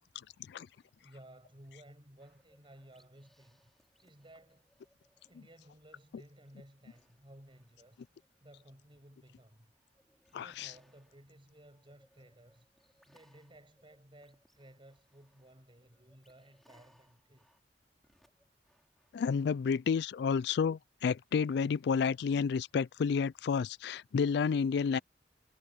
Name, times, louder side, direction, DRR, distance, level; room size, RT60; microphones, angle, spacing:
voice 1, 1.0-3.7 4.0-4.7 5.2-9.7 10.3-12.7 13.1-17.5, right 1 dB, 30° right, 7.8 m, -57 dB
sound 1, 2.2-5.7 6.1-19.7, equal, ahead, 5.2 m, -71 dB
voice 2, 10.3-10.7 19.1-25.0, left 6 dB, 70° left, 0.3 m, -30 dB
head